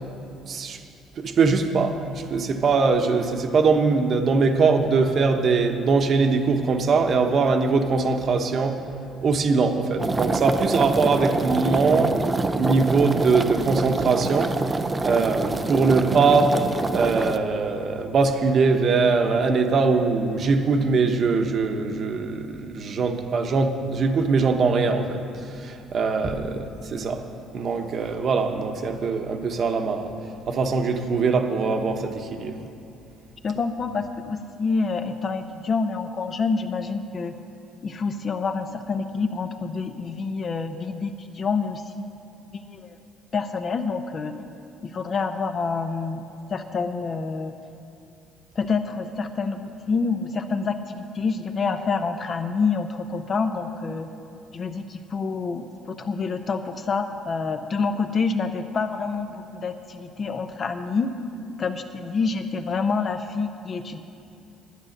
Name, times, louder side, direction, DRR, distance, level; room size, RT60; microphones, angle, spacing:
voice 1, 0.5-0.8 1.2-8.8 9.2-12.2 12.6-14.5 15.0-16.5 16.9-27.2 27.5-30.1 30.5-32.6, right 4 dB, 45° right, 5 dB, 1.0 m, -22 dB
sound 1, 10.0-17.4, right 3 dB, 20° right, 0.5 m, -26 dB
voice 2, 33.4-37.4 37.8-42.1 42.5-43.0 43.3-44.3 44.9-46.2 46.5-47.5 48.6-54.1 54.5-61.1 61.6-64.0, left 4 dB, 40° left, 7 dB, 0.7 m, -27 dB
11.5 x 9.7 x 6.6 m, 2.7 s
cardioid pair, 125°, 0 cm